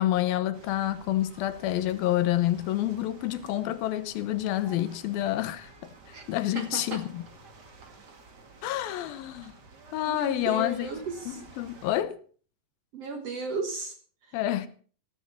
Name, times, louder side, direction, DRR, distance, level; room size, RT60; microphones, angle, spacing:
voice 1, 0.0-5.9 6.3-7.2 8.6-9.5 9.9-10.9 11.3-12.2 14.3-14.7, left 13 dB, 85° left, 2.7 m, -28 dB
sound 1, 0.5-12.0, right 3 dB, 35° right, 1.9 m, -52 dB
voice 2, 6.6-7.1 10.1-11.4 12.9-14.0 14.3-14.4, right 4 dB, 60° right, 1.8 m, -35 dB
14.0 x 13.5 x 4.3 m
omnidirectional pair, 4.2 m